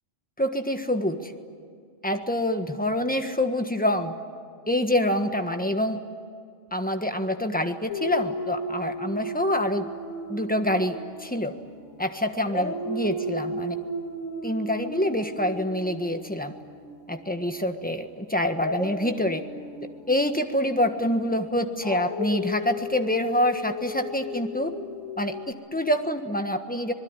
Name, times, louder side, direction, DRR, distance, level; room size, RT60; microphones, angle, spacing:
voice 1, 0.4-1.3 2.0-4.1 4.7-6.0 6.7-9.9 10.3-11.5 12.0-13.7 14.4-16.5 17.1-19.4 20.1-24.7 25.2-26.9, left 1 dB, 5° left, 6 dB, 1.4 m, -26 dB
Dog, 7.9-12.0 12.4-17.4 18.5-25.5, equal, 85° left, 2.5 m, -35 dB
26.5 x 20.0 x 9.8 m, 2.2 s
omnidirectional pair, 1.3 m